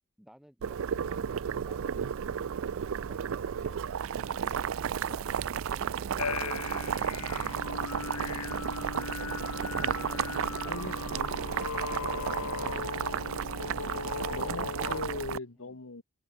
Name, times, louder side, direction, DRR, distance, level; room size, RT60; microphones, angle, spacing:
voice 1, 0.2-3.8 15.6-15.8, equal, ahead, 4.9 m, -57 dB
Boiling, 0.6-15.4, right 8 dB, 60° right, 0.4 m, -33 dB
sound 1, 6.2-15.0, left 5 dB, 85° left, 1.1 m, -37 dB
voice 2, 9.7-10.0 10.7-11.4 13.6-16.0, left 3 dB, 60° left, 1.3 m, -40 dB
head